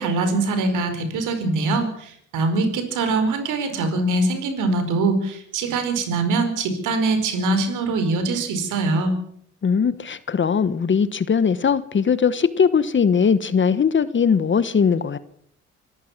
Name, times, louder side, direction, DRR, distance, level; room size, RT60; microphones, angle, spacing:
voice 1, 0.0-9.1, right 3 dB, 85° right, 8 dB, 4.9 m, -23 dB
voice 2, 9.6-15.2, left 6 dB, 40° left, 15 dB, 1.2 m, -20 dB
25.5 x 14.5 x 7.3 m, 0.68 s
cardioid pair, 90°, 30 cm